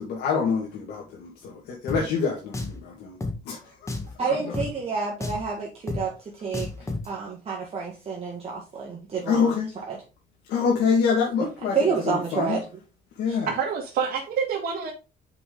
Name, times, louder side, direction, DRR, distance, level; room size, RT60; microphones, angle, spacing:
voice 1, 0.0-1.6 1.8-3.1 3.5-3.6 9.3-9.7 10.5-11.8 12.0-12.6 13.2-13.5, left 5 dB, 80° left, -2 dB, 1.9 m, -25 dB
Drum, 1.9-2.0 2.5-2.8 3.2-3.3 3.9-4.1 4.5-4.7 5.2-5.5 5.9-6.0 6.5-7.1, left 2 dB, 15° left, 1.5 m, -30 dB
voice 2, 4.2-6.1 6.4-6.7 7.1-9.6 9.9-10.0 11.7-12.6 13.3-13.4, right 5 dB, 35° right, -3 dB, 2.0 m, -29 dB
voice 3, 13.5-14.9, right 6 dB, 65° right, -2 dB, 1.8 m, -27 dB
5.9 x 5.1 x 3.8 m, 0.31 s
cardioid pair, 110°, 17 cm